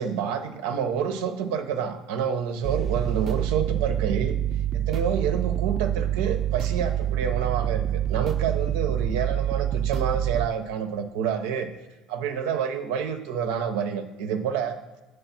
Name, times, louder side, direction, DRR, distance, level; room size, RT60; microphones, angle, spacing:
voice 1, 0.0-4.4 4.7-11.7 12.1-14.8, right 7 dB, 90° right, 7 dB, 0.6 m, -28 dB
sound 1, 2.6-10.5, right 11 dB, 40° right, 0.4 m, -26 dB
7.0 x 3.3 x 5.8 m, 1.1 s
supercardioid pair, 105°, 0 cm